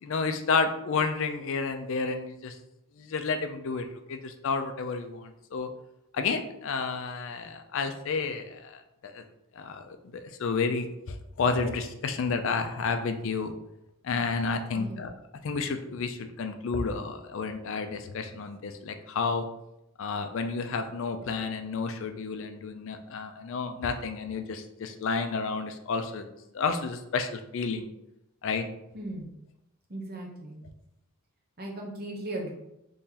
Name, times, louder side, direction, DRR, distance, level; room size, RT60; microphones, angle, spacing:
voice 1, 0.0-2.6 3.0-5.7 6.1-9.2 9.6-10.0 10.4-13.5 14.0-15.1 15.4-19.4 20.0-26.2 26.5-27.9 28.4-28.7, left 4 dB, 60° left, 7 dB, 0.4 m, -31 dB
voice 2, 28.9-29.3 29.9-30.6 31.6-32.5, right 1 dB, 45° right, -1 dB, 0.8 m, -37 dB
3.7 x 3.1 x 2.8 m, 0.86 s
head